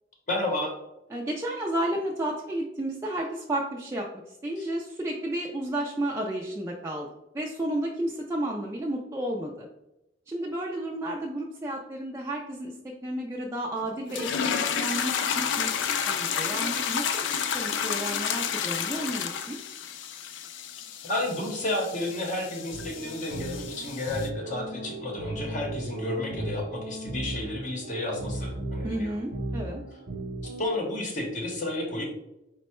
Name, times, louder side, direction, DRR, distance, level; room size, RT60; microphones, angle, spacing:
voice 1, 0.3-0.7 4.6-4.7 21.0-29.1 30.4-32.0, left 1 dB, 45° left, 0 dB, 0.8 m, -31 dB
voice 2, 1.1-4.1 4.4-7.1 7.3-9.7 10.3-12.7 13.0-14.3 14.8-15.7 16.1-19.6 28.8-29.8, right 1 dB, 15° right, -2 dB, 0.4 m, -32 dB
sound 1, 14.1-24.3, left 7 dB, 75° left, 0.4 m, -31 dB
sound 2, 22.7-30.7, right 1 dB, 60° right, 0.7 m, -36 dB
4.4 x 2.1 x 4.2 m, 0.90 s
head